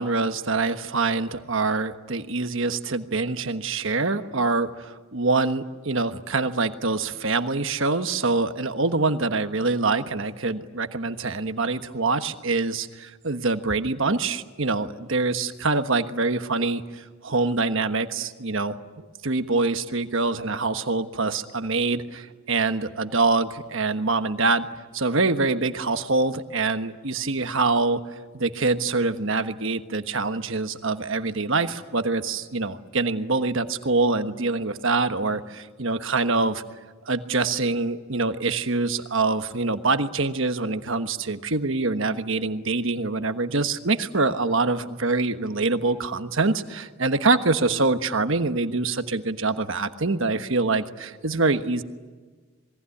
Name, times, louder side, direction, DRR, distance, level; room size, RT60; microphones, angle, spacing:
voice 1, 0.0-24.7 24.9-28.0 28.3-36.6 37.1-51.8, right 3 dB, 60° right, 9 dB, 1.3 m, -25 dB
27.5 x 21.5 x 9.9 m, 1.4 s
head